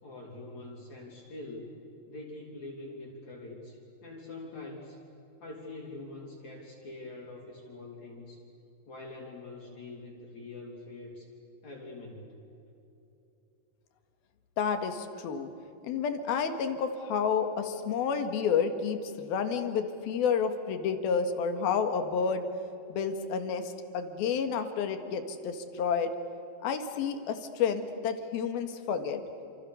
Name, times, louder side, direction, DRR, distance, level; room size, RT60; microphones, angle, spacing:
voice 1, 0.0-1.8 2.1-5.0 5.4-8.4 8.9-11.3 11.6-12.3, left 2 dB, 45° left, -2 dB, 4.7 m, -44 dB
voice 2, 14.6-15.5 15.8-22.4 22.9-26.1 26.6-29.2, left 6 dB, 75° left, 7 dB, 3.6 m, -30 dB
29.0 x 28.0 x 7.0 m, 2.9 s
omnidirectional pair, 4.5 m